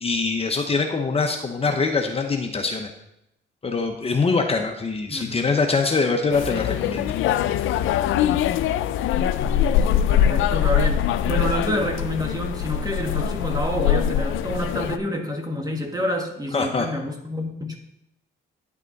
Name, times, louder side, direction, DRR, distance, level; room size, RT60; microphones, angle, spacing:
voice 1, 0.0-2.9 3.6-7.1 16.5-16.9, left 4 dB, 30° left, 4 dB, 0.9 m, -23 dB
voice 2, 5.1-5.4 9.4-17.8, equal, 20° right, 3 dB, 1.6 m, -28 dB
sound 1, 6.3-15.0, left 9 dB, 80° left, 0.5 m, -22 dB
10.0 x 6.0 x 4.0 m, 0.82 s
cardioid pair, 90°, 20 cm